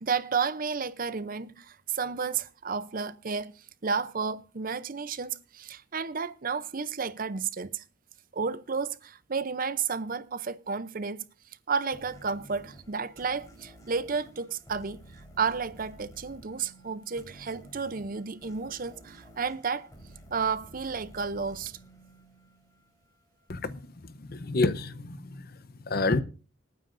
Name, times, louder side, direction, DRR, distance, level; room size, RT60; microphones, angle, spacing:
voice 1, 0.0-3.5 3.8-7.8 8.3-11.2 11.7-19.9 20.3-21.8, right 5 dB, 45° right, 0.6 m, -32 dB
sound 1, 11.9-23.1, right 1 dB, 15° left, 4.1 m, -52 dB
voice 2, 23.5-26.2, left 2 dB, 50° left, 0.8 m, -30 dB
26.5 x 9.3 x 2.6 m
head